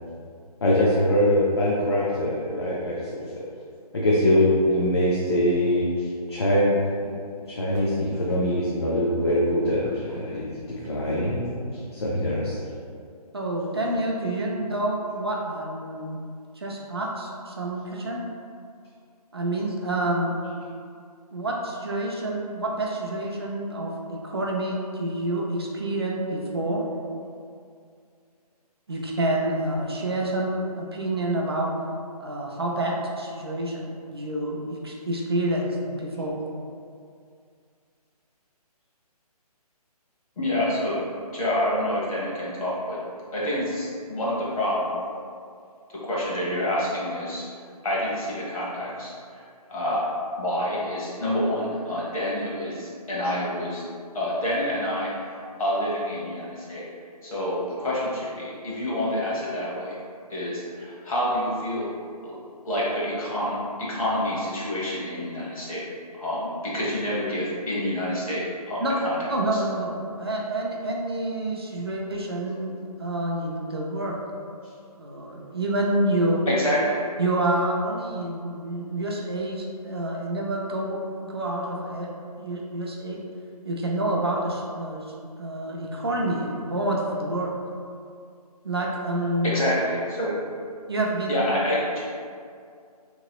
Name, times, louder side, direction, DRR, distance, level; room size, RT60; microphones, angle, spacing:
voice 1, 0.6-3.4 3.9-5.8 6.3-6.8 7.5-10.5 10.8-11.5 11.7-12.6, left 1 dB, 40° left, -6 dB, 0.4 m, -23 dB
voice 2, 13.3-16.2 16.6-18.2 19.3-20.4 21.3-26.8 28.9-31.7 32.2-36.4 68.8-69.0 69.3-74.2 75.0-76.4 77.2-81.0 81.3-82.1 82.4-83.2 83.6-85.1 85.4-87.5 88.6-89.5 90.9-91.4, right 1 dB, 40° right, -2 dB, 0.4 m, -28 dB
voice 3, 40.4-41.0 41.3-43.0 43.3-45.0 45.9-47.5 47.8-50.1 50.4-53.8 54.1-56.9 57.2-59.9 60.3-61.9 62.2-62.3 62.6-65.8 66.1-69.6 76.5-77.0 89.4-90.4 91.3-92.0, left 1 dB, 60° left, -6 dB, 1.2 m, -28 dB
3.0 x 2.8 x 2.9 m, 2.3 s
hypercardioid pair, 170°, 20 cm